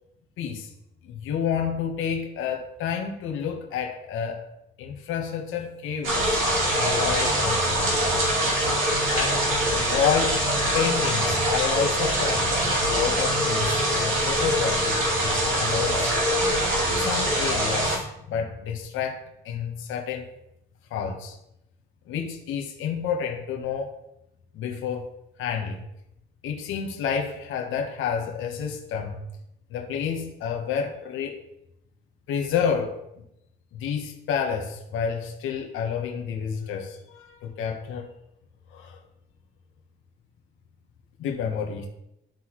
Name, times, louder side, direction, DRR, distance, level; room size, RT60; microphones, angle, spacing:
voice 1, 0.4-0.7 1.0-4.4 4.8-6.2 6.7-8.3 9.1-9.4 9.7-10.4 10.7-12.5 12.9-16.6 17.0-20.3 20.9-21.4 22.1-23.9 24.5-25.1 25.4-25.8 26.4-29.2 29.7-31.4 32.3-32.9 33.7-38.1 38.7-39.0 41.2-41.9, left 7 dB, 90° left, 2 dB, 1.1 m, -29 dB
sound 1, 6.0-18.0, right 1 dB, 80° right, 2.6 m, -23 dB
11.5 x 3.9 x 3.0 m, 0.82 s
cardioid pair, 90°, 20 cm